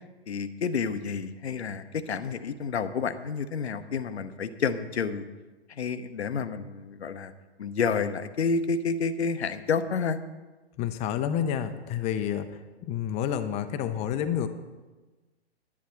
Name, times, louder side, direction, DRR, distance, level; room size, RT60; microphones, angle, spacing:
voice 1, 0.3-5.2 5.7-7.3 7.6-10.2, left 5 dB, 80° left, 10 dB, 0.8 m, -29 dB
voice 2, 10.8-12.5 12.8-14.5, left 9 dB, 20° left, 9 dB, 0.5 m, -29 dB
10.5 x 10.0 x 4.4 m, 1.2 s
hypercardioid pair, 120°, 32 cm